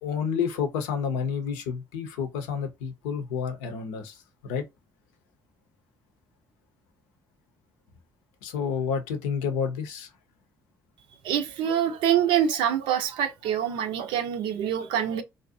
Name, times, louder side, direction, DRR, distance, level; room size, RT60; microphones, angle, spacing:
voice 1, 0.0-4.2 4.4-4.6 8.4-10.1, left 6 dB, 85° left, 0.6 m, -29 dB
voice 2, 11.2-15.2, right 9 dB, 75° right, 0.5 m, -25 dB
2.5 x 2.0 x 2.6 m
hypercardioid pair, 60°, 9 cm